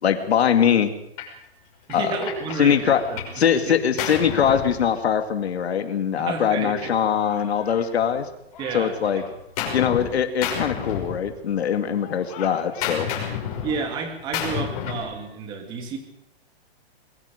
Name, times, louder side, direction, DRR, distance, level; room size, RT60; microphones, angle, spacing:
voice 1, 0.0-0.9 1.9-2.2 2.6-3.0 3.4-8.3 8.7-9.2 9.7-13.1, left 8 dB, 85° left, 7 dB, 2.5 m, -22 dB
Gunshot gunfire, 1.2-1.4 1.9-3.4 3.7-5.4 6.3-8.2 8.5-10.1 10.4-11.6 11.9-15.1, left 8 dB, 35° left, 6.0 m, -32 dB
voice 2, 1.9-4.0 4.5-4.6 6.2-6.9 8.6-9.3 13.6-16.0, right 5 dB, 15° right, 5 dB, 2.4 m, -31 dB
23.5 x 22.5 x 5.2 m, 0.78 s
hypercardioid pair, 175°, 31 cm